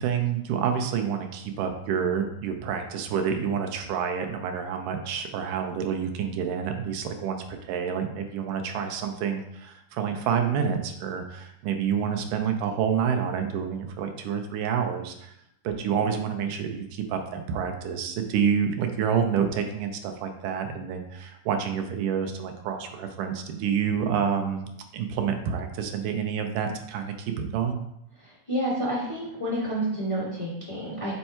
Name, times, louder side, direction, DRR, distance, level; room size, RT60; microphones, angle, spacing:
voice 1, 0.0-15.3 15.6-24.7 24.9-27.8, right 7 dB, 85° right, 5 dB, 2.2 m, -28 dB
voice 2, 28.5-31.1, right 1 dB, 15° left, -8 dB, 1.6 m, -29 dB
5.4 x 4.5 x 4.3 m, 0.79 s
omnidirectional pair, 3.6 m